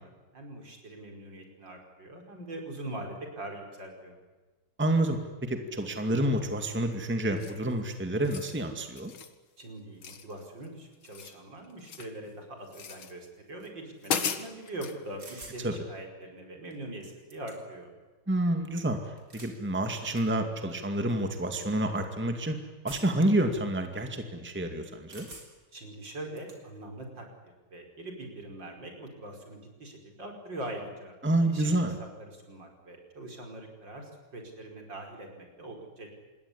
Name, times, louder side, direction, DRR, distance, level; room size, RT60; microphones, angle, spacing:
voice 1, 0.0-4.2 9.6-17.9 25.7-27.3 27.7-31.1 31.5-31.7 32.0-36.1, right 1 dB, 60° right, 2 dB, 5.9 m, -42 dB
voice 2, 4.8-9.1 15.6-15.7 18.3-19.0 19.3-22.6 22.8-25.3 31.2-31.9, right 1 dB, 5° right, 6 dB, 2.1 m, -28 dB
sound 1, 7.4-7.7 8.1-8.6 9.0-9.4 10.0-10.7 10.9-12.2 12.7-13.1 13.6-13.7 14.0-15.0, left 7 dB, 75° left, 2.5 m, -36 dB
sound 2, 15.2-15.6 16.7-16.8 17.0-17.8 19.0-19.6 20.2-20.3 21.1-21.3 22.9-23.3 25.1-25.7 26.1-26.6, right 2 dB, 40° right, 4.3 m, -48 dB
27.0 x 20.5 x 10.0 m, 1.3 s
omnidirectional pair, 2.2 m